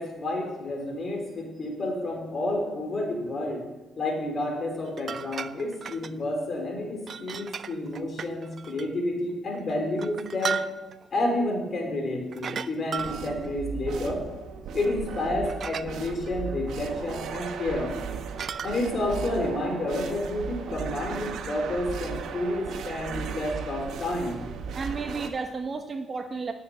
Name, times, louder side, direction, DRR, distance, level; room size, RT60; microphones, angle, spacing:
voice 1, 0.0-3.7 4.0-10.7 11.1-14.3 14.7-17.9 18.6-24.5, left 1 dB, 45° left, 2 dB, 3.7 m, -30 dB
sound 1, 4.8-6.1 7.0-8.9 9.5-11.0 12.3-13.5 15.2-15.3 15.4-15.9 16.3-16.4 17.9-18.8, right 7 dB, 50° right, 0.5 m, -35 dB
sound 2, 13.0-25.3, right 6 dB, 75° right, 1.2 m, -36 dB
voice 2, 24.7-26.5, right 4 dB, 35° right, 6 dB, 0.9 m, -33 dB
10.5 x 7.6 x 9.1 m, 1.1 s
cardioid pair, 90°, 0 cm